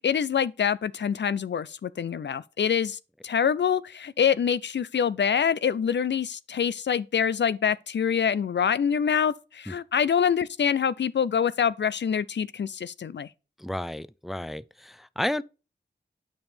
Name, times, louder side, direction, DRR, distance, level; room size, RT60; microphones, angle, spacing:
voice 1, 0.0-13.3, left 7 dB, 70° left, 0.5 m, -25 dB
voice 2, 13.6-15.4, left 1 dB, ahead, 0.4 m, -32 dB
8.8 x 5.4 x 3.4 m
cardioid pair, 50°, 19 cm